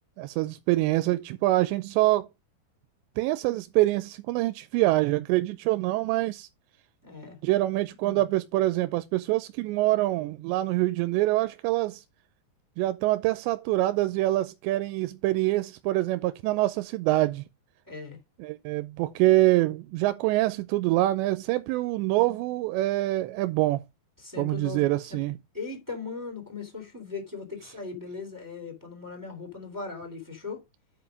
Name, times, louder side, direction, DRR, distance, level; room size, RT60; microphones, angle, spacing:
voice 1, 0.2-2.3 3.2-6.5 7.4-12.0 12.8-17.4 18.4-23.8 24.4-25.4, right 17 dB, 85° right, 2.9 m, -25 dB
voice 2, 7.0-7.4 8.0-8.1 17.9-18.2 24.2-24.8 25.1-25.2 25.5-30.6, left 4 dB, 5° right, 2.5 m, -38 dB
9.1 x 5.2 x 5.2 m
omnidirectional pair, 5.0 m